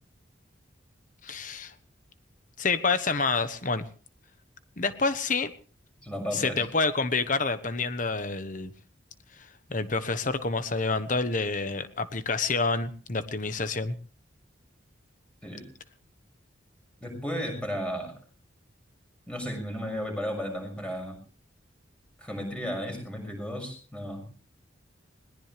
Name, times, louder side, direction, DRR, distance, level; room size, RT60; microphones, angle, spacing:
voice 1, 1.2-1.7 2.6-3.9 4.8-5.5 6.3-8.7 9.7-14.0, left 4 dB, 40° left, 11 dB, 1.2 m, -28 dB
voice 2, 6.0-6.7 15.4-15.7 17.0-18.1 19.3-21.2 22.2-24.3, equal, 5° left, 3 dB, 6.5 m, -34 dB
21.0 x 19.0 x 3.4 m, 0.39 s
head